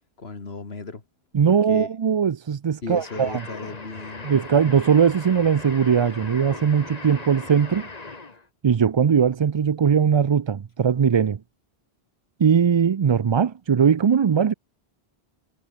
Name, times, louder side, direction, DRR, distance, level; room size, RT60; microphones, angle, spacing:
voice 1, 0.2-1.0 1.5-1.9 2.8-4.6, left 4 dB, 90° left, 2.5 m, -36 dB
voice 2, 1.3-3.4 4.2-7.9 8.6-11.4 12.4-14.5, right 7 dB, 45° right, 0.3 m, -20 dB
sound 1, 3.0-8.5, left 3 dB, 40° left, 1.9 m, -39 dB
omnidirectional pair, 1.0 m